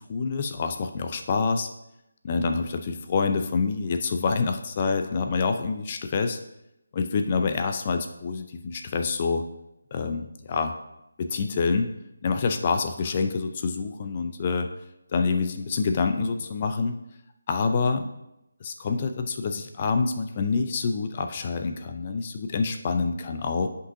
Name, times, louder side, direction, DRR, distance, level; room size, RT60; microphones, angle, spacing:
voice 1, 0.1-1.7 2.2-6.4 6.9-9.4 9.9-10.7 11.2-11.9 12.2-14.7 15.1-17.0 17.5-18.1 18.6-23.7, left 4 dB, 30° left, 6 dB, 0.4 m, -26 dB
9.7 x 5.4 x 2.7 m, 0.86 s
figure-of-eight pair, 155°, 0 cm